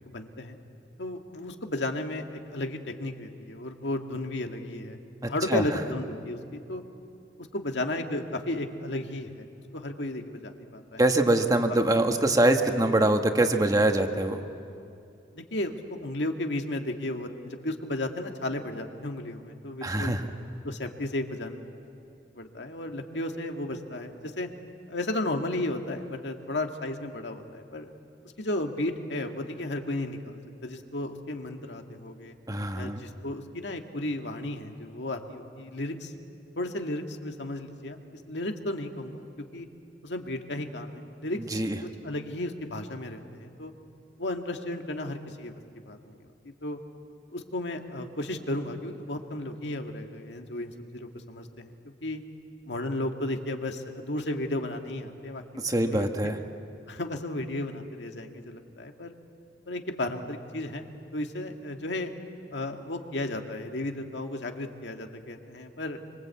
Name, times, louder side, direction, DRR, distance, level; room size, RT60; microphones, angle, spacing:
voice 1, 0.1-0.6 1.0-5.0 5.3-6.8 7.5-9.5 9.7-11.0 15.3-20.1 20.6-21.7 22.4-24.5 24.9-27.9 28.4-32.3 32.8-36.1 36.6-38.0 38.3-39.3 39.5-39.7 40.0-41.4 42.0-43.7 44.2-45.5 45.9-46.2 46.6-46.8 47.3-52.2 52.7-56.3 56.9-59.1 59.7-60.8 61.1-62.1 62.5-66.0, left 1 dB, 85° left, 4 dB, 2.0 m, -34 dB
voice 2, 11.0-14.4 19.8-20.3 32.5-33.0 41.5-41.8 55.6-56.4, right 1 dB, 20° right, 5 dB, 1.4 m, -23 dB
26.0 x 25.0 x 8.4 m, 2.5 s
head